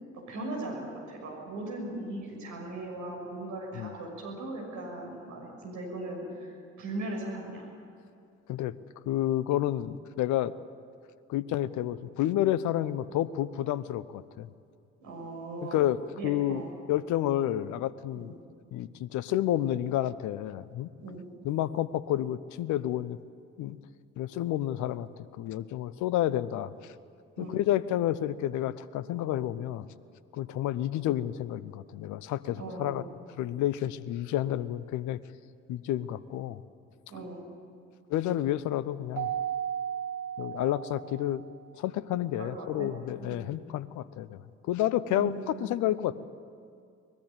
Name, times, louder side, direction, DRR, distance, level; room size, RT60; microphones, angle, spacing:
voice 1, 0.1-0.8 1.1-7.7 9.6-9.7 15.0-15.8 16.2-16.7 18.1-18.3 21.0-21.2 27.4-27.6 32.6-33.1 37.1-37.4 42.4-42.9 43.2-43.4 45.1-45.6, right 2 dB, 55° right, -1 dB, 6.4 m, -38 dB
voice 2, 9.1-10.5 11.3-14.5 15.7-18.3 18.7-20.9 21.4-23.2 23.6-23.8 24.2-25.1 25.4-26.7 27.4-29.8 30.3-33.0 33.4-35.2 35.7-36.6 38.1-39.3 40.4-41.4 41.8-44.4 44.7-46.2, left 12 dB, 55° left, 17 dB, 0.9 m, -30 dB
Keyboard (musical), 39.1-41.4, right 9 dB, 80° right, 1.3 m, -34 dB
23.0 x 20.5 x 8.2 m, 2.3 s
figure-of-eight pair, 45°, 35 cm